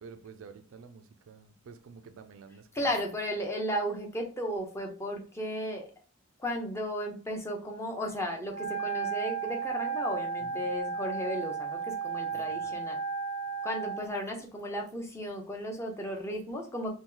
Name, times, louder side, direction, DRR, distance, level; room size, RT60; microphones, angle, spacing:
voice 1, 0.0-3.0 10.4-10.7 12.3-12.7, right 5 dB, 70° right, 0.4 m, -50 dB
voice 2, 2.7-5.9 6.4-13.0 13.6-16.9, equal, 15° left, 0.6 m, -34 dB
Wind instrument woodwind instrument, 8.5-14.1, right 6 dB, 45° left, 0.9 m, -34 dB
2.9 x 2.1 x 3.7 m
head